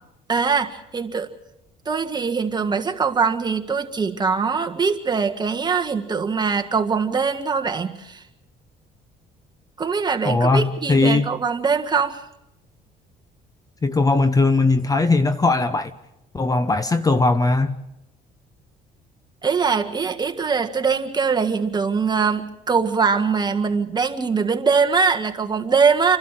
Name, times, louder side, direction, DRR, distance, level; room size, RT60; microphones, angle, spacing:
voice 1, 0.3-1.3 1.8-8.2 9.8-12.2 19.4-26.2, right 5 dB, 25° right, 5 dB, 1.7 m, -22 dB
voice 2, 10.2-11.3 13.8-15.9 16.3-17.8, left 3 dB, 20° left, 11 dB, 1.0 m, -19 dB
30.0 x 12.5 x 7.6 m, 0.88 s
cardioid pair, 110°, 17 cm